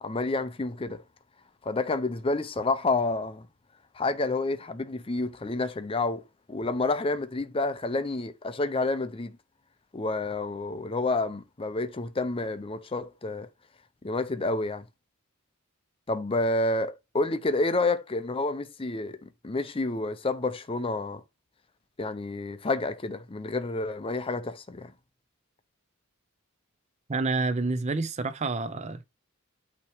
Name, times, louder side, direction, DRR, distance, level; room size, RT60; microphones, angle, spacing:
voice 1, 0.0-1.0 1.6-3.5 4.0-6.2 6.5-9.4 9.9-13.5 14.0-14.8 16.1-21.2 22.0-24.9, left 2 dB, 25° left, 0.5 m, -29 dB
voice 2, 27.1-29.0, right 3 dB, 30° right, 0.5 m, -28 dB
8.6 x 3.0 x 4.6 m
head